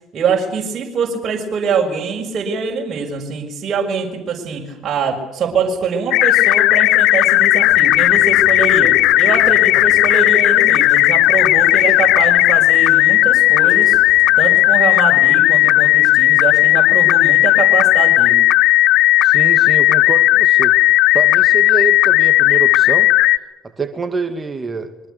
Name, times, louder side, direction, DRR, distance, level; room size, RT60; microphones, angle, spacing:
voice 1, 0.1-18.4, right 5 dB, 45° right, 0 dB, 6.4 m, -23 dB
sound 1, 6.1-23.4, left 16 dB, 70° left, 1.1 m, -13 dB
sound 2, 7.6-14.7, left 4 dB, 35° left, 5.5 m, -40 dB
voice 2, 19.2-20.8 21.1-23.1 23.6-25.1, right 4 dB, 30° right, 8 dB, 2.4 m, -26 dB
26.5 x 24.0 x 7.0 m, 1.0 s
hypercardioid pair, 65°, 0 cm